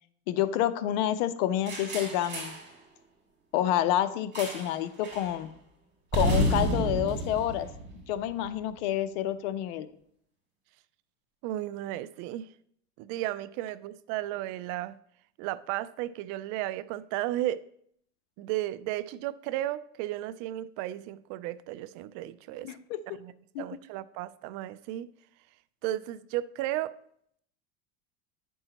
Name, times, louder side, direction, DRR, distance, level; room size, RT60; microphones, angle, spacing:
voice 1, 0.3-2.5 3.5-5.5 6.1-7.7 8.1-9.9 22.6-23.0 23.5-23.6, left 11 dB, 75° left, 0.7 m, -28 dB
sound 1, 1.7-2.7 4.3-4.8 5.0-5.3 6.1-8.5, right 1 dB, 30° right, 2.4 m, -30 dB
voice 2, 11.4-12.5 13.0-15.0 15.4-17.6 18.4-22.7 23.2-23.3 23.6-25.1 25.8-26.9, right 14 dB, 60° right, 0.5 m, -34 dB
9.8 x 5.4 x 2.9 m
supercardioid pair, 120°, 35 cm